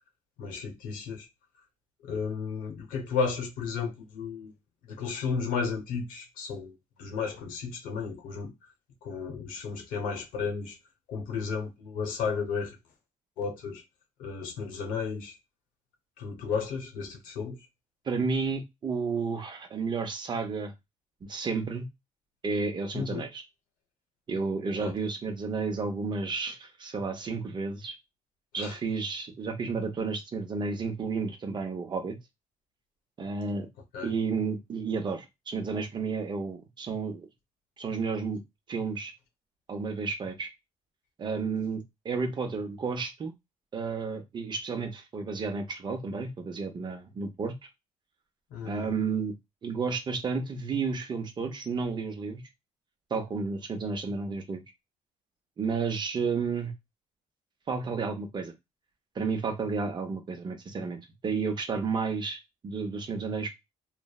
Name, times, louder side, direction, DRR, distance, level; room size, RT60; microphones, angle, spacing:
voice 1, 0.4-1.3 2.0-4.5 4.9-8.5 9.0-10.8 11.1-12.8 13.4-13.8 14.2-15.4 16.2-17.7 22.9-23.2 24.8-24.9 28.5-28.8 33.9-34.1 48.5-49.0, left 5 dB, 90° left, 0.9 m, -33 dB
voice 2, 18.1-20.7 21.3-21.9 22.4-23.4 24.3-27.9 28.5-32.2 33.2-33.7 34.0-37.3 37.8-38.4 38.7-39.1 39.7-40.5 41.2-43.3 43.7-47.5 48.6-49.3 49.6-52.4 53.1-54.6 55.6-56.7 57.7-58.5 59.1-63.5, right 4 dB, 35° right, 0.6 m, -32 dB
3.2 x 2.0 x 2.3 m
cardioid pair, 125°, 14 cm